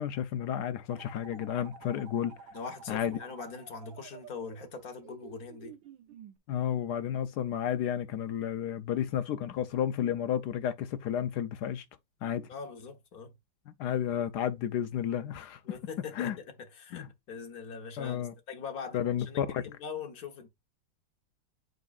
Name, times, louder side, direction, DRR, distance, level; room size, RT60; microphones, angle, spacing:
voice 1, 0.0-2.3 2.9-3.2 6.5-11.8 12.2-12.5 13.7-15.6 16.2-16.4 16.9-17.1 18.0-18.3 18.9-19.6, left 10 dB, 70° left, 1.1 m, -32 dB
sound 1, 0.9-6.4, right 6 dB, 90° right, 1.6 m, -51 dB
voice 2, 2.5-5.7 12.5-13.3 15.6-18.2 18.5-20.5, left 5 dB, 55° left, 1.6 m, -42 dB
7.9 x 5.2 x 2.4 m
omnidirectional pair, 2.1 m